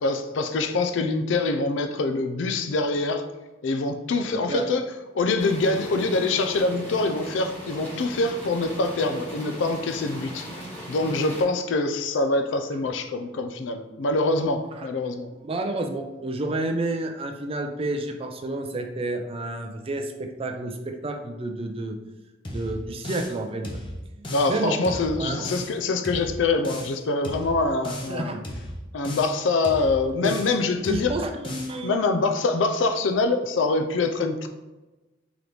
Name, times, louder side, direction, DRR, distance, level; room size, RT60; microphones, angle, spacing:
voice 1, 0.0-3.2 3.6-4.8 5.1-10.5 10.9-15.3 24.3-28.4 28.9-31.1 31.8-34.5, left 3 dB, 75° left, 7 dB, 0.4 m, -25 dB
sound 1, 5.4-11.4, equal, 10° left, 1.1 m, -38 dB
voice 2, 15.4-22.0 22.5-23.8 24.2-24.8 25.2-25.5 27.8-28.4 30.2-30.3 30.9-32.0, right 2 dB, 30° right, 5 dB, 0.4 m, -30 dB
sound 2, 22.4-23.4 23.6-24.6 24.8-25.8 26.0-27.0 27.2-28.2 28.4-29.4 29.6-30.6 30.8-31.8, left 1 dB, 25° left, 0.6 m, -35 dB
3.9 x 3.0 x 3.3 m, 1.1 s
head